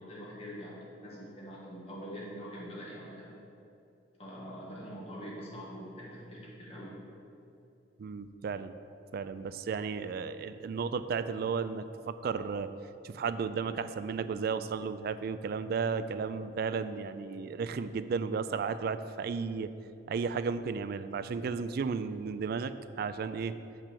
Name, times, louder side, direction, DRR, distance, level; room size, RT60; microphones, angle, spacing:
voice 1, 0.0-3.3 4.2-7.0, equal, 35° left, -5 dB, 1.9 m, -44 dB
voice 2, 8.0-8.7 9.1-12.7 13.0-19.7 20.1-23.6, right 5 dB, 55° right, 12 dB, 0.3 m, -34 dB
5.9 x 5.5 x 6.8 m, 2.7 s
head